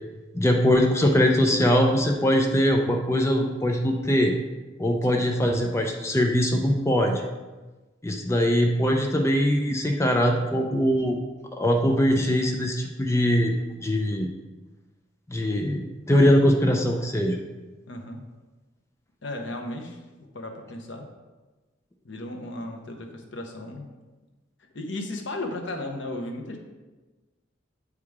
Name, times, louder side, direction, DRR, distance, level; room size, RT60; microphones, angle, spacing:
voice 1, 0.3-4.3 4.8-7.2 8.0-11.2 11.5-13.5 13.8-14.3 15.3-17.4, equal, 15° left, 2 dB, 0.4 m, -22 dB
voice 2, 17.9-18.2 19.2-21.1 22.0-23.9 24.7-26.6, left 1 dB, 65° left, 3 dB, 0.9 m, -35 dB
8.3 x 4.8 x 3.5 m, 1.2 s
head